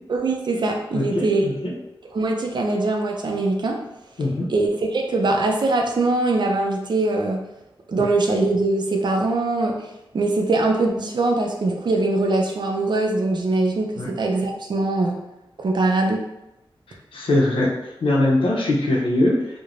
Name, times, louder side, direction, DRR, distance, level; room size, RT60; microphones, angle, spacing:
voice 1, 0.1-1.5 2.1-3.8 4.5-7.4 7.9-9.7 10.1-15.2 15.6-16.2, right 2 dB, 55° right, 1 dB, 0.4 m, -22 dB
voice 2, 0.9-1.7 4.2-4.5 14.0-14.1 17.1-17.7 18.0-19.4, left 1 dB, 80° left, -3 dB, 0.6 m, -21 dB
3.1 x 2.1 x 2.5 m, 0.92 s
wide cardioid pair, 105°, 9 cm